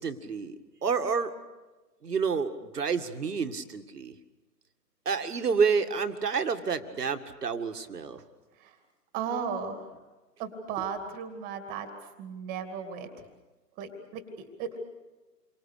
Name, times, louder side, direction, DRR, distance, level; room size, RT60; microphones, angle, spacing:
voice 1, 0.0-1.3 2.0-4.1 5.1-8.2, right 5 dB, 70° right, 8 dB, 2.1 m, -29 dB
voice 2, 9.1-9.9 10.4-11.9 12.2-13.2 13.8-14.9, right 6 dB, 15° right, 7 dB, 2.4 m, -36 dB
29.5 x 24.5 x 6.7 m, 1.2 s
figure-of-eight pair, 140°, 49 cm